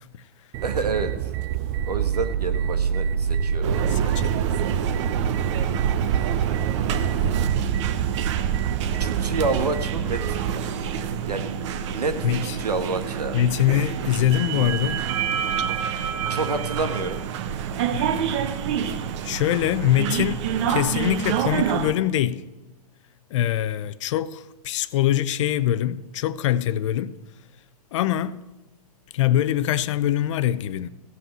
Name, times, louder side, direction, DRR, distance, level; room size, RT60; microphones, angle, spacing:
sound 1, 0.5-10.6, right 9 dB, 35° right, 0.5 m, -26 dB
voice 1, 0.6-1.1 1.9-3.9 8.9-10.6 11.3-11.6 11.9-13.4 16.3-17.2, right 3 dB, 90° right, 1.6 m, -28 dB
sound 2, 3.6-21.9, right 8 dB, 50° right, 1.0 m, -27 dB
voice 2, 3.9-4.5 12.2-12.6 13.3-15.1 17.9-18.3 19.2-20.4 20.7-22.4 23.3-27.2 27.9-28.4 29.1-30.9, left 12 dB, 50° left, 0.6 m, -23 dB
15.5 x 5.7 x 7.5 m
hypercardioid pair, 125°, 20 cm